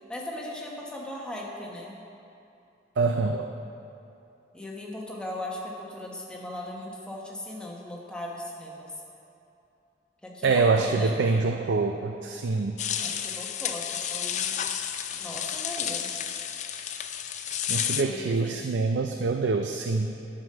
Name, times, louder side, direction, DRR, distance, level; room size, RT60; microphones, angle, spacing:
voice 1, 0.1-2.0 4.5-8.9 10.2-11.2 13.0-14.6 15.1-16.1 17.8-18.8, left 1 dB, 5° left, -3 dB, 1.1 m, -38 dB
voice 2, 3.0-3.5 10.4-12.8 17.7-20.2, right 4 dB, 80° right, 5 dB, 0.4 m, -25 dB
sound 1, 12.8-18.0, left 9 dB, 40° left, 0.4 m, -31 dB
11.0 x 5.2 x 6.6 m, 2.7 s
head